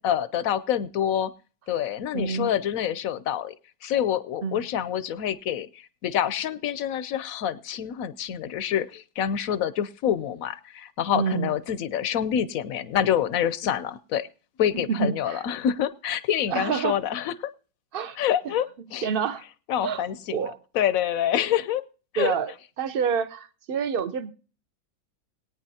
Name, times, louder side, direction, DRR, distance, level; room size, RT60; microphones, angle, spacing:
voice 1, 0.0-1.3 1.7-3.5 3.8-14.3 14.6-17.5 18.2-18.7 18.9-19.1 19.7-21.8 22.1-22.3, left 10 dB, 65° left, 14 dB, 0.9 m, -27 dB
voice 2, 2.1-2.5 4.4-4.6 11.1-11.5 14.7-15.4 16.5-17.0 17.9-18.2 19.0-19.4 19.8-20.0 20.3-20.6 22.2-24.3, right 7 dB, 50° right, 12 dB, 0.6 m, -27 dB
21.0 x 9.2 x 2.8 m, 0.38 s
omnidirectional pair, 1.9 m